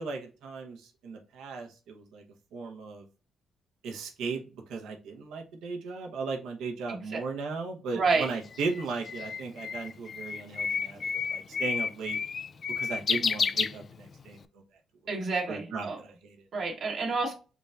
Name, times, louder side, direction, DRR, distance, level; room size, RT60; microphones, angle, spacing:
voice 1, 0.0-2.2 2.5-3.0 3.8-4.4 4.7-11.0 11.3-12.2 12.8-14.4 15.5-16.3, right 4 dB, 85° right, 2 dB, 1.0 m, -36 dB
voice 2, 6.9-7.2 7.9-8.3 15.1-16.0 16.5-17.3, right 4 dB, 65° right, -1 dB, 1.2 m, -29 dB
Bird, 8.1-14.3, left 6 dB, 45° left, 0.3 m, -31 dB
5.1 x 3.3 x 2.4 m, 0.33 s
cardioid pair, 90°, 0 cm